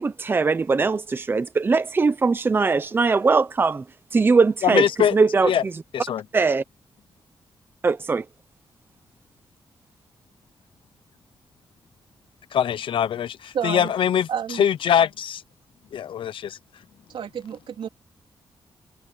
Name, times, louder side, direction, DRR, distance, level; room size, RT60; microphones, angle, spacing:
voice 1, 0.0-3.8 4.1-4.9 5.1-5.5 6.3-6.6 7.8-8.2, right 4 dB, 25° right, 0.8 m, -20 dB
voice 2, 4.6-5.2 5.4-5.6 5.9-6.2 12.5-15.4 15.9-16.6, left 9 dB, 80° left, 0.8 m, -23 dB
voice 3, 13.5-13.9 14.3-14.6 17.1-17.9, right 8 dB, 85° right, 3.8 m, -30 dB
wide cardioid pair, 175°, 9 cm